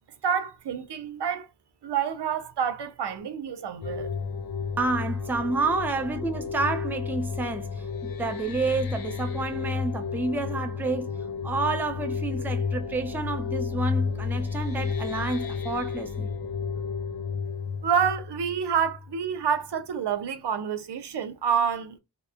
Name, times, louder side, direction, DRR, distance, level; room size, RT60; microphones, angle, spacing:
voice 1, 0.2-1.5 1.8-4.1 17.8-22.0, right 7 dB, 80° right, 0.6 m, -28 dB
sound 1, 3.8-19.3, left 5 dB, 60° left, 0.5 m, -32 dB
voice 2, 4.8-11.1 11.4-16.3, right 3 dB, 5° right, 0.3 m, -29 dB
2.9 x 2.1 x 2.2 m
wide cardioid pair, 70°, 40 cm